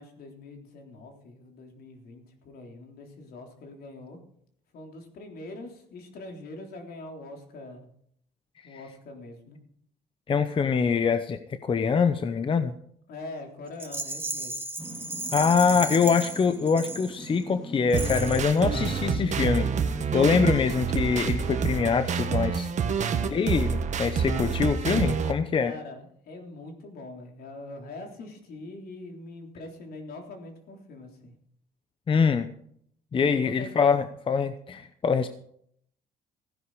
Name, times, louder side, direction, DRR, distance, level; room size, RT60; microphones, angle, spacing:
voice 1, 0.0-4.2 4.7-7.9 8.6-9.6 13.1-14.5 22.9-23.4 25.6-31.3 33.2-33.7, left 2 dB, 65° left, 3 dB, 3.6 m, -43 dB
voice 2, 10.3-12.7 15.3-19.7 20.1-22.7 23.3-25.7 32.1-32.5 33.1-35.3, left 5 dB, 30° left, 10 dB, 0.8 m, -24 dB
Rattle, 13.8-17.4 17.9-18.6, right 2 dB, 10° right, 1.8 m, -35 dB
sound 1, 14.8-20.9, equal, 5° left, 2.2 m, -41 dB
sound 2, 17.9-25.3, right 6 dB, 45° right, 1.5 m, -27 dB
15.5 x 10.5 x 4.8 m, 0.67 s
cardioid pair, 110°, 17 cm